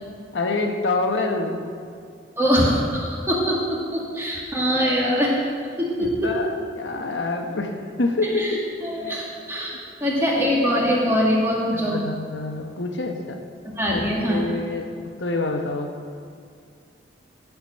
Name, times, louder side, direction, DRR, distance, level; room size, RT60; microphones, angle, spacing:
voice 1, 0.3-1.6 6.0-8.6 9.0-9.2 11.9-13.4 13.9-15.9, left 3 dB, 90° left, 4 dB, 1.0 m, -26 dB
voice 2, 2.4-5.4 5.8-6.3 8.4-9.7 10.0-12.0 13.6-14.4, equal, 15° right, -5 dB, 2.1 m, -23 dB
14.5 x 5.1 x 6.3 m, 2.2 s
head